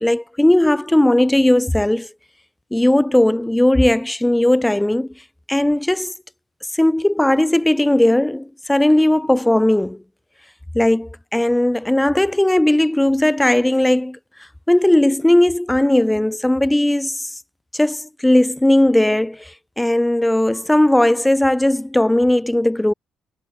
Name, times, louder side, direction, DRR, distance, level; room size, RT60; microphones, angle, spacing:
voice 1, 0.0-2.1 2.7-5.1 5.5-6.1 6.7-10.0 10.7-14.2 14.7-17.3 17.7-22.9, left 1 dB, 5° left, 0.4 m, -17 dB
cardioid pair, 175°, 0 cm